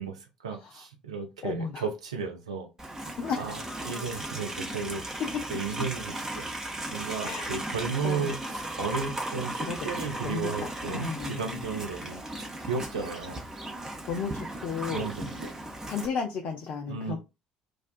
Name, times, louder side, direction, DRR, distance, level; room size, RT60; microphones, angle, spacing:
voice 1, 0.0-2.7 3.0-5.2 5.5-6.5 6.9-13.4 14.9-15.5 16.9-17.2, right 5 dB, 75° right, 0.4 m, -34 dB
voice 2, 1.4-1.8 3.2-3.4 7.2-7.6 8.0-8.3 9.7-11.6 14.1-15.1 15.9-17.2, left 5 dB, 45° left, 0.4 m, -34 dB
Livestock farm animals working animals, 2.8-16.1, right 1 dB, 15° right, 0.7 m, -36 dB
2.4 x 2.2 x 2.4 m
figure-of-eight pair, 55°, 3 cm